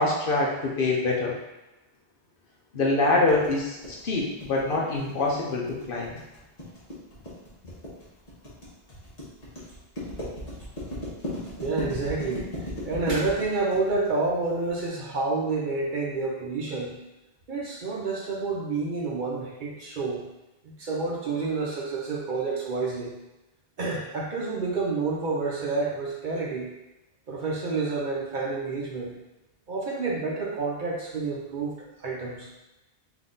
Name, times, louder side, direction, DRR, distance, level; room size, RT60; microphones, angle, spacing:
voice 1, 0.0-1.4 2.7-3.8 4.0-6.1, left 2 dB, 55° left, -2 dB, 0.8 m, -25 dB
sound 1, 3.3-14.8, left 1 dB, 35° left, 1.3 m, -37 dB
voice 2, 11.3-12.5 12.8-16.9 17.5-20.2 20.6-23.1 23.8-26.7 27.3-29.1 29.7-32.5, right 3 dB, 50° right, -3 dB, 0.8 m, -29 dB
3.8 x 2.8 x 3.8 m, 1.0 s
omnidirectional pair, 1.1 m